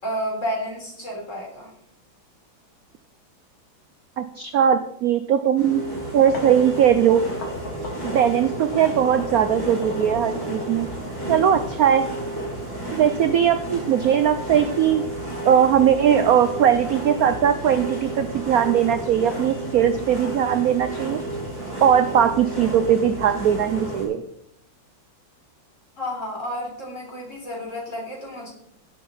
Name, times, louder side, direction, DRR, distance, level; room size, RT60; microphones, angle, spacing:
voice 1, 0.0-1.7 26.0-28.5, equal, 35° left, -2 dB, 4.2 m, -31 dB
voice 2, 4.2-5.8 6.1-7.2 8.0-10.9 11.3-12.0 12.9-15.0 15.4-21.2 21.8-24.2, right 9 dB, 65° right, 10 dB, 0.9 m, -19 dB
sound 1, 5.6-24.0, right 1 dB, 10° left, 5.6 m, -32 dB
sound 2, 6.3-11.3, left 1 dB, 90° left, 3.2 m, -36 dB
16.5 x 7.5 x 4.2 m, 0.73 s
omnidirectional pair, 2.1 m